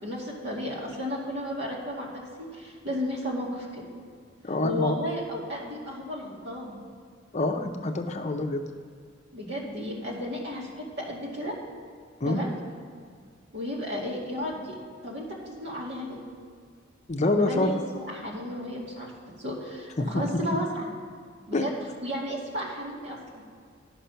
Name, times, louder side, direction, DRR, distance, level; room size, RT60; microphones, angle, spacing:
voice 1, 0.0-2.1 2.4-3.8 4.6-6.8 9.3-11.6 12.2-12.5 13.5-14.8 15.0-16.2 17.2-17.8 18.0-19.1 19.4-20.9 21.5-21.7 22.0-23.4, equal, 65° right, -3 dB, 2.2 m, -33 dB
voice 2, 4.4-5.0 7.3-8.6 12.2-12.4 17.1-17.7 20.0-20.2 21.5-21.7, left 2 dB, 35° left, 5 dB, 0.6 m, -26 dB
11.0 x 6.0 x 5.7 m, 2.1 s
head